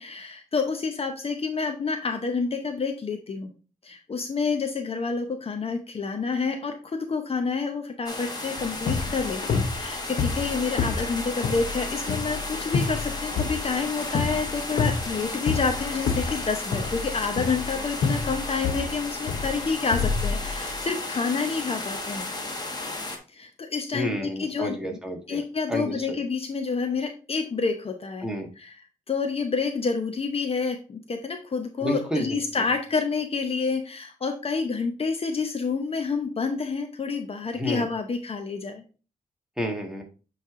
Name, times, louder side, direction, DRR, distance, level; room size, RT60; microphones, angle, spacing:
voice 1, 0.0-3.5 3.8-22.3 23.3-24.8 25.3-28.3 28.6-28.7 29.1-38.8, left 4 dB, 45° left, 5 dB, 0.8 m, -28 dB
sound 1, 8.1-23.2, left 2 dB, 30° left, 1.4 m, -34 dB
sound 2, 8.6-20.8, left 5 dB, 85° left, 0.8 m, -29 dB
voice 2, 23.9-25.4 25.7-26.2 28.2-28.5 31.8-32.6 37.5-37.8 39.6-40.0, equal, 5° right, 1 dB, 1.7 m, -30 dB
8.3 x 3.3 x 3.7 m, 0.34 s
cardioid pair, 95°, 14 cm